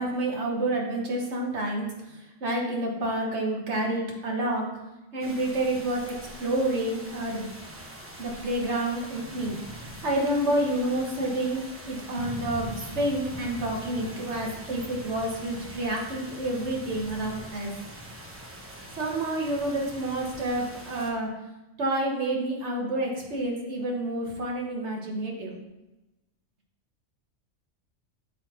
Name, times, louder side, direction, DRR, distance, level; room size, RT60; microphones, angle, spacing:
voice 1, 0.0-4.7 5.1-7.5 8.2-9.6 10.0-17.7 19.0-21.3 21.8-25.6, right 1 dB, 55° right, -1 dB, 1.6 m, -29 dB
sound 1, 5.2-21.1, equal, 10° right, 0.8 m, -43 dB
8.1 x 4.0 x 4.2 m, 1.0 s
omnidirectional pair, 1.4 m